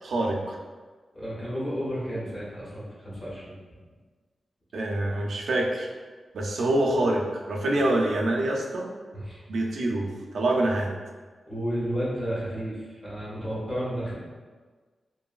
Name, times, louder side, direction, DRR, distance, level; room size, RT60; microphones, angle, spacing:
voice 1, 0.0-0.6 4.7-5.9 6.3-8.9 9.5-10.9, right 1 dB, 70° right, -1 dB, 0.4 m, -26 dB
voice 2, 1.1-3.5 7.7-7.8 9.1-9.4 11.4-14.1, equal, 20° left, -8 dB, 0.9 m, -32 dB
3.0 x 2.5 x 2.3 m, 1.4 s
wide cardioid pair, 180°, 0 cm